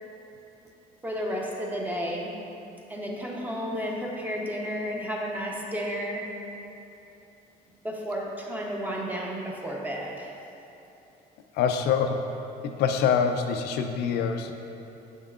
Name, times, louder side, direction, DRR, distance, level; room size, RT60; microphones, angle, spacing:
voice 1, 1.0-2.3 2.9-6.3 7.8-10.3, equal, 10° right, -2 dB, 0.8 m, -32 dB
voice 2, 11.5-12.2 12.6-14.5, left 7 dB, 75° left, 6 dB, 0.4 m, -25 dB
7.0 x 5.5 x 2.4 m, 2.9 s
cardioid pair, 110°, 17 cm